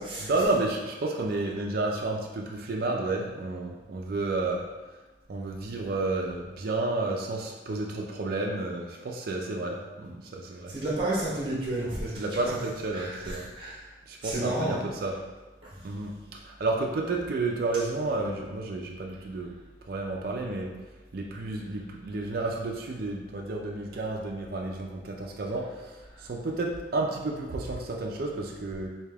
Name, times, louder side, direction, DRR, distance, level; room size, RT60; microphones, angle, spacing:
voice 1, 0.2-4.7 5.3-10.7 12.1-13.5 14.1-15.2 15.8-19.6 19.9-20.7 21.1-28.9, right 2 dB, 55° right, 0 dB, 0.4 m, -31 dB
voice 2, 10.7-12.5 12.9-13.7 14.2-14.8 15.7-15.8, right 1 dB, 30° right, -6 dB, 0.7 m, -31 dB
3.4 x 2.8 x 3.4 m, 1.2 s
head